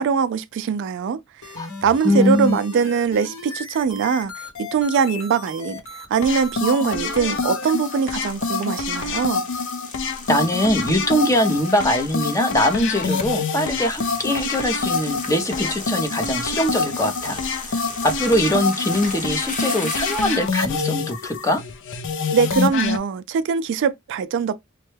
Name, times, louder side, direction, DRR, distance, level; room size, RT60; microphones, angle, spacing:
voice 1, 0.0-1.6 1.8-9.4 22.3-24.6, right 6 dB, 55° right, 0.3 m, -22 dB
sound 1, 1.4-7.7, left 3 dB, 80° left, 1.4 m, -37 dB
voice 2, 2.0-2.6 10.3-21.6, left 1 dB, 15° left, 0.6 m, -22 dB
sound 2, 6.2-23.0, left 4 dB, 60° left, 0.5 m, -26 dB
sound 3, 7.6-20.6, left 3 dB, 40° left, 0.9 m, -36 dB
3.1 x 2.2 x 3.2 m
head